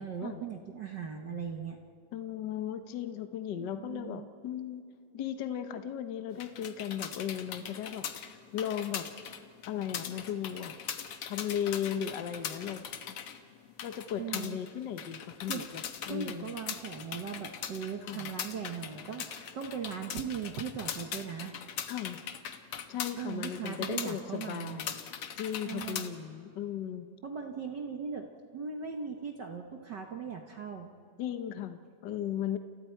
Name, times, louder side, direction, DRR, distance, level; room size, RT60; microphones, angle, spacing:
voice 1, 0.0-1.8 3.5-4.2 14.2-14.6 15.5-15.6 16.1-21.5 23.2-24.8 25.6-26.1 27.2-28.3 28.5-30.9, right 6 dB, 55° right, 3 dB, 1.2 m, -39 dB
voice 2, 2.1-4.8 5.1-9.1 9.7-10.7 11.3-13.2 13.8-16.5 18.0-18.3 21.9-22.2 22.9-25.0 25.4-27.1 31.2-32.6, left 9 dB, 75° left, 8 dB, 1.0 m, -36 dB
sound 1, 6.3-26.1, left 8 dB, 60° left, 1.7 m, -41 dB
30.0 x 29.0 x 4.6 m, 2.4 s
omnidirectional pair, 3.4 m